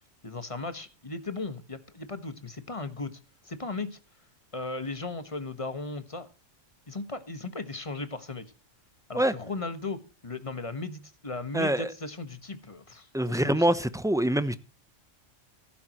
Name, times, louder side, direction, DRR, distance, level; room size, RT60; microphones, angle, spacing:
voice 1, 0.2-3.2 3.4-4.0 4.5-6.3 6.9-8.5 9.1-13.7, left 3 dB, 25° left, 1.3 m, -36 dB
voice 2, 11.5-11.9 13.1-14.6, right 1 dB, 5° right, 0.5 m, -25 dB
16.0 x 12.0 x 3.0 m
omnidirectional pair, 1.3 m